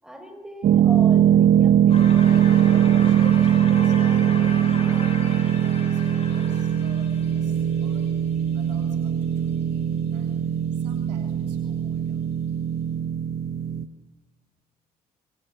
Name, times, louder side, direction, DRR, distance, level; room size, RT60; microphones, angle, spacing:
voice 1, 0.0-2.4, right 1 dB, 5° right, 6 dB, 6.7 m, -38 dB
sound 1, 0.6-13.8, right 10 dB, 45° right, 1.2 m, -21 dB
sound 2, 1.9-8.8, left 3 dB, 30° left, 7.3 m, -36 dB
voice 2, 2.2-4.2 4.5-8.1 8.5-10.4 10.7-12.2, right 5 dB, 75° right, 4 dB, 3.3 m, -46 dB
25.5 x 25.0 x 7.9 m, 1.1 s
figure-of-eight pair, 50°, 21 cm